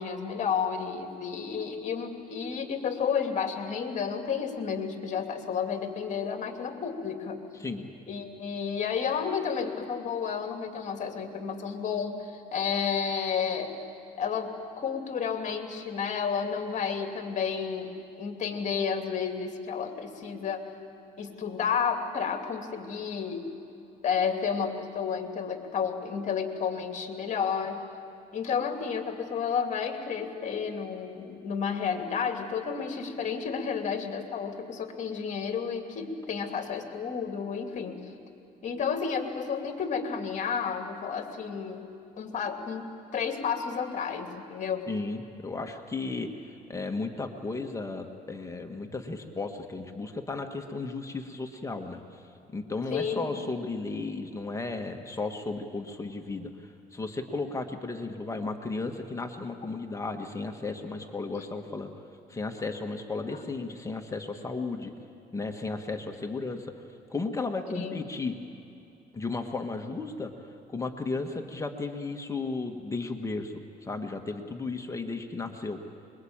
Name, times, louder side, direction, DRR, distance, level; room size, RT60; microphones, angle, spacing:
voice 1, 0.0-7.4 8.1-13.7 14.2-17.9 18.2-20.6 21.2-23.4 24.0-27.8 28.3-38.1 38.6-41.8 42.2-42.8 43.1-44.9 52.9-53.3 67.8-68.0, left 6 dB, 45° left, 4 dB, 2.8 m, -31 dB
voice 2, 44.9-52.2 52.5-61.9 62.3-64.9 65.3-66.7 67.1-68.4 69.1-75.8, left 3 dB, 20° left, 4 dB, 1.7 m, -34 dB
25.0 x 22.5 x 8.9 m, 2.7 s
cardioid pair, 110°, 17 cm